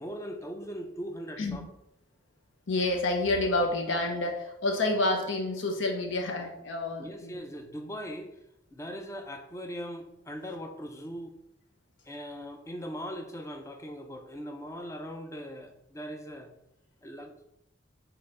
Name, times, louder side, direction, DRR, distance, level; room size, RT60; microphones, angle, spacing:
voice 1, 0.0-1.6 7.0-8.3 8.7-11.3 12.1-16.5 17.0-17.3, equal, 15° left, 5 dB, 0.5 m, -40 dB
voice 2, 2.7-7.4, left 2 dB, 80° left, 3 dB, 0.8 m, -29 dB
4.3 x 3.3 x 3.7 m, 0.80 s
head